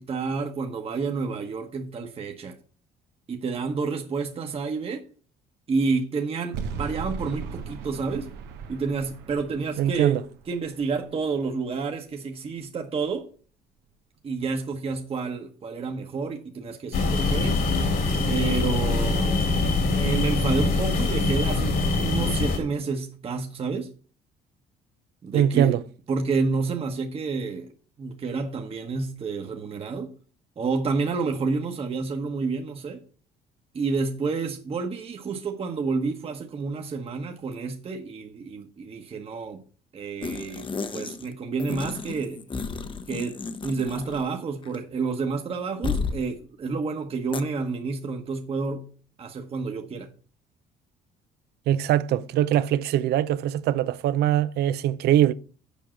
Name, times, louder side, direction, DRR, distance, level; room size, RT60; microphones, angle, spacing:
voice 1, 0.0-2.5 3.3-5.0 5.7-8.3 8.7-13.3 14.2-17.6 18.3-19.4 19.9-23.9 25.2-25.8 26.1-27.7 28.0-30.1 30.6-33.0 33.7-39.6 39.9-42.4 43.1-48.9 49.2-50.1, right 4 dB, 35° right, 1.1 m, -29 dB
sound 1, 6.5-11.7, right 5 dB, 90° right, 1.0 m, -38 dB
voice 2, 9.8-10.2 25.3-25.8 51.7-55.3, right 11 dB, 75° right, 0.6 m, -22 dB
sound 2, 16.9-22.6, left 3 dB, 65° left, 2.6 m, -23 dB
sound 3, 40.2-41.3 41.6-44.4 44.6-44.8 45.8-46.2 47.3-47.4, left 5 dB, 30° left, 0.8 m, -32 dB
7.3 x 5.2 x 7.4 m
cardioid pair, 110°, 17 cm